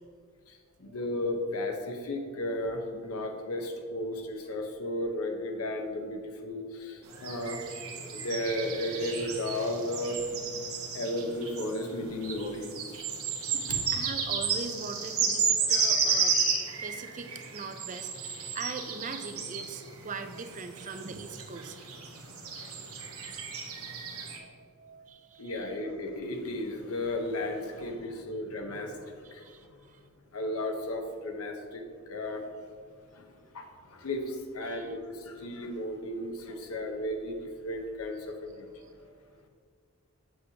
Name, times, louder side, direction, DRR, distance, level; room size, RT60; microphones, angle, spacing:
voice 1, 0.5-7.6 8.1-10.2 10.9-13.0 13.5-13.8 22.2-23.4 25.4-29.5 30.3-32.4 33.1-37.4 37.6-38.7, left 1 dB, 80° left, 4 dB, 1.0 m, -35 dB
voice 2, 2.9-3.3 7.1-7.4 10.6-10.7 13.1-13.2 13.9-16.4 16.8-21.8 24.2-25.7 29.2-30.0 34.6-34.9 38.7-39.4, right 4 dB, 35° right, 8 dB, 0.4 m, -42 dB
sound 1, 7.1-24.4, right 5 dB, 80° right, 1.2 m, -33 dB
8.0 x 7.6 x 2.8 m, 2.1 s
head